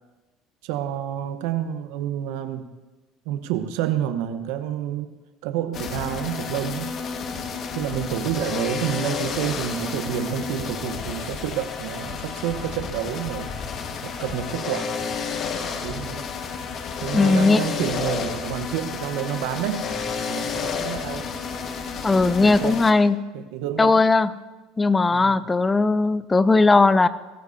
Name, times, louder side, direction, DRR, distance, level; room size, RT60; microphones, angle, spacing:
voice 1, 0.6-2.7 3.2-5.1 5.4-6.9 7.7-13.5 14.0-14.9 15.8-16.3 17.0-19.9 20.2-21.3 22.3-22.8 23.3-24.0 25.1-25.4, right 10 dB, 75° right, 9 dB, 1.0 m, -29 dB
sound 1, 5.7-22.9, left 5 dB, 50° left, 1.6 m, -31 dB
voice 2, 17.1-17.6 22.0-23.2 23.8-24.3 24.8-27.1, left 3 dB, 20° left, 15 dB, 0.6 m, -18 dB
22.0 x 14.5 x 2.8 m, 1.2 s
supercardioid pair, 85°, 0 cm